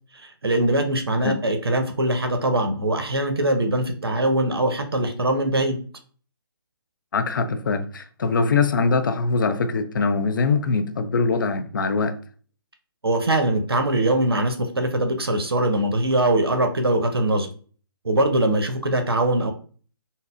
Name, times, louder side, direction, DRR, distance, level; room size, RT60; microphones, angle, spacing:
voice 1, 0.1-5.8 13.0-17.5 18.0-19.5, right 1 dB, 80° right, 0.7 m, -22 dB
voice 2, 7.1-12.2, left 4 dB, 55° left, 0.4 m, -22 dB
3.9 x 2.0 x 2.5 m
figure-of-eight pair, 140°, 13 cm